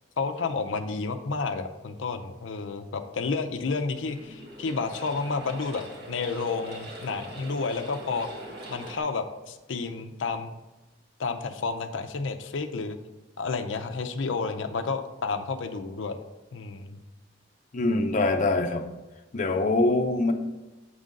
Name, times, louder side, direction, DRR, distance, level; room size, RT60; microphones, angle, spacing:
voice 1, 0.2-8.3 8.7-10.5 11.2-13.0 13.4-16.2 16.5-17.0, left 4 dB, 85° left, 6 dB, 0.6 m, -31 dB
sound 1, 3.9-9.0, right 1 dB, 60° right, 1.8 m, -42 dB
voice 2, 17.7-18.9 19.3-20.3, left 2 dB, 45° left, 4 dB, 0.6 m, -24 dB
8.2 x 3.7 x 5.2 m, 1.0 s
head